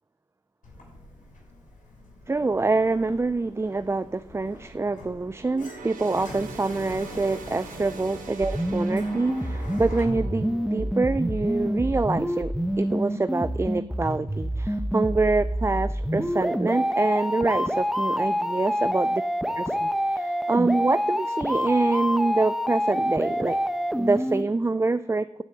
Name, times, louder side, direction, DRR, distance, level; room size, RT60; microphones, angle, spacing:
Sliding door, 0.6-10.0, left 2 dB, 70° left, 6.1 m, -45 dB
voice 1, 2.3-19.2 19.6-23.6 24.0-25.4, right 3 dB, 20° right, 14 dB, 0.4 m, -26 dB
sound 1, 5.5-13.2 13.6-13.8 14.6-14.7, right 5 dB, 75° right, 1.5 m, -44 dB
sound 2, 8.4-24.4, equal, ahead, 1.0 m, -27 dB
12.5 x 6.3 x 8.6 m, 0.91 s
supercardioid pair, 45°, 14 cm